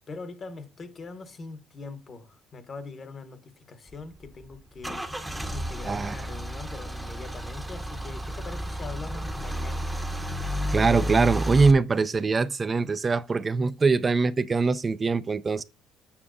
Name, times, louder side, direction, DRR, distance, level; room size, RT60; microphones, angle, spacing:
voice 1, 0.1-5.1 5.5-9.9, left 4 dB, 40° left, 0.9 m, -42 dB
Car / Engine starting / Idling, 3.9-11.7, equal, 5° right, 0.7 m, -32 dB
voice 2, 5.8-6.2 10.7-15.6, right 4 dB, 30° right, 0.3 m, -23 dB
7.0 x 5.8 x 2.5 m
supercardioid pair, 75°, 0 cm